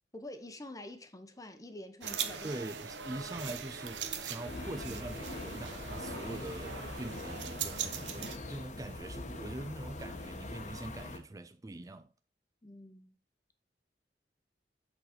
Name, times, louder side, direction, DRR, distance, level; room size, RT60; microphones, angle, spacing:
voice 1, 0.1-2.6 12.6-13.2, left 1 dB, 20° left, 0.9 m, -47 dB
sound 1, 2.0-8.4, right 7 dB, 85° right, 0.9 m, -40 dB
voice 2, 2.4-12.1, right 2 dB, 20° right, 0.4 m, -43 dB
sound 2, 4.5-11.2, left 2 dB, 45° left, 1.1 m, -43 dB
8.0 x 4.0 x 4.4 m
head